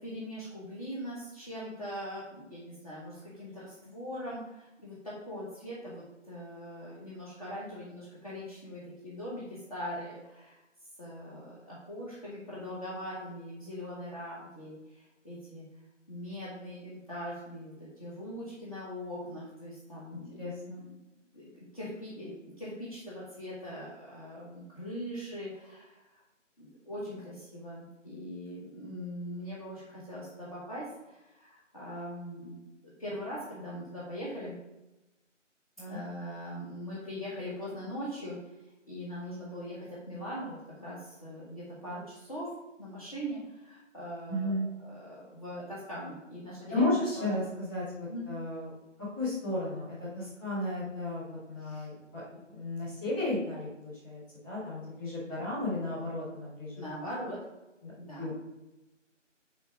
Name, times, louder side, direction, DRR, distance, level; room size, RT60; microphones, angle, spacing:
voice 1, 0.0-10.6 11.0-15.7 16.1-20.4 20.8-20.9 21.3-26.2 26.6-34.6 35.9-38.4 38.9-42.5 42.8-47.4 48.1-48.3 51.6-51.9 56.8-57.4 58.0-58.4, equal, 30° left, -9 dB, 1.6 m, -41 dB
voice 2, 20.4-20.8 35.8-36.0 44.3-44.7 46.7-48.7 49.2-52.2 52.5-56.8 57.8-57.9 58.2-58.4, left 2 dB, 10° left, -13 dB, 2.4 m, -34 dB
9.5 x 3.5 x 5.3 m, 0.99 s
figure-of-eight pair, 160°, 38 cm